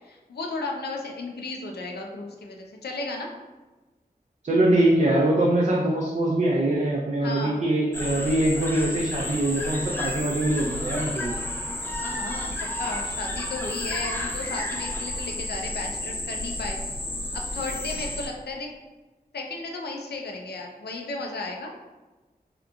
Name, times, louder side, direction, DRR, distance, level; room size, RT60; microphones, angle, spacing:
voice 1, 0.0-3.3 7.2-7.6 11.9-12.5 12.8-16.8 17.3-18.7 19.3-21.7, left 3 dB, 90° left, 1 dB, 0.4 m, -34 dB
voice 2, 4.4-11.4, right 1 dB, 45° right, -3 dB, 0.4 m, -23 dB
sound 1, 7.9-18.3, left 1 dB, 15° left, 0.4 m, -32 dB
2.8 x 2.5 x 2.3 m, 1.2 s
wide cardioid pair, 60°, 16 cm